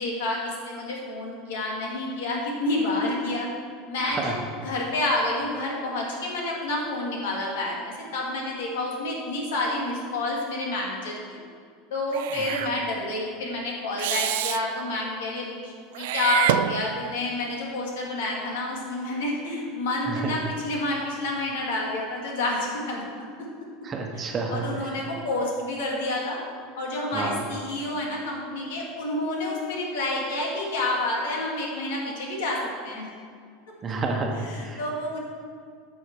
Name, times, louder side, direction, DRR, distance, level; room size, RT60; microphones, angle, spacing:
voice 1, 0.0-3.5 3.9-4.4 4.6-11.4 11.9-23.0 24.5-26.4 26.8-33.1 34.4-35.2, left 2 dB, 85° left, -2 dB, 2.5 m, -29 dB
voice 2, 4.0-4.4 12.4-12.5 20.1-20.4 23.8-25.0 27.1-27.4 33.8-34.9, right 3 dB, 25° right, 2 dB, 1.1 m, -30 dB
Meow / Hiss, 12.1-12.7 14.0-14.6 15.9-17.2, right 13 dB, 75° right, 0.3 m, -27 dB
11.0 x 6.4 x 4.8 m, 2.2 s
supercardioid pair, 145°, 0 cm